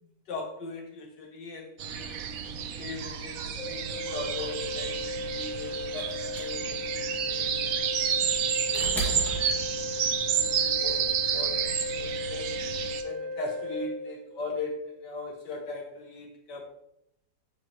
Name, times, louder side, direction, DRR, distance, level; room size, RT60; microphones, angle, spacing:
voice 1, 0.0-2.2 2.8-5.0 5.3-6.1 6.3-6.8 7.2-7.8 8.7-9.4 10.3-16.7, left 3 dB, 65° left, 2 dB, 1.8 m, -40 dB
sound 1, 1.8-13.0, right 8 dB, 65° right, 0.9 m, -30 dB
Organ, 3.6-14.6, left 2 dB, 45° left, 1.7 m, -36 dB
sound 2, 5.9-10.2 11.4-11.5, right 2 dB, ahead, 2.0 m, -37 dB
8.3 x 7.2 x 3.1 m, 0.76 s
omnidirectional pair, 2.0 m